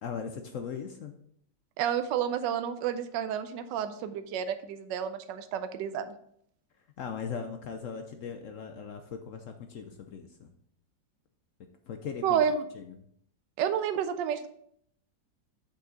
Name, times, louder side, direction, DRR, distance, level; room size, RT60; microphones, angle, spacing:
voice 1, 0.0-1.1 7.0-10.5 11.9-12.4 12.7-13.0, left 6 dB, 70° left, 6 dB, 0.7 m, -39 dB
voice 2, 1.8-6.1 12.2-12.6 13.6-14.5, right 8 dB, 80° right, 10 dB, 1.2 m, -30 dB
6.5 x 5.6 x 3.9 m, 0.68 s
omnidirectional pair, 2.0 m